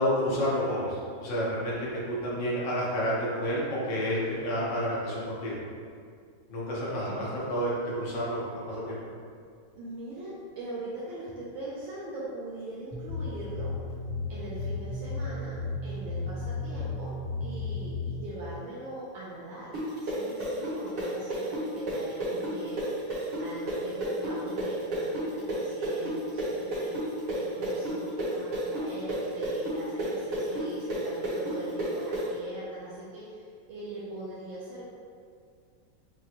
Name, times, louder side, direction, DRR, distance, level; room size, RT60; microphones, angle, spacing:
voice 1, 0.0-1.8 2.1-5.6 6.5-9.0, equal, 65° left, -6 dB, 1.6 m, -30 dB
voice 2, 9.8-13.7 14.3-15.5 15.8-17.1 17.4-28.0 28.3-34.9, right 2 dB, 80° right, -8 dB, 1.4 m, -41 dB
sound 1, 12.9-18.2, left 3 dB, 40° right, 1.0 m, -34 dB
sound 2, 19.7-27.4 27.6-32.2, right 1 dB, 60° right, 1.8 m, -31 dB
6.2 x 2.2 x 2.9 m, 2.2 s
omnidirectional pair, 2.2 m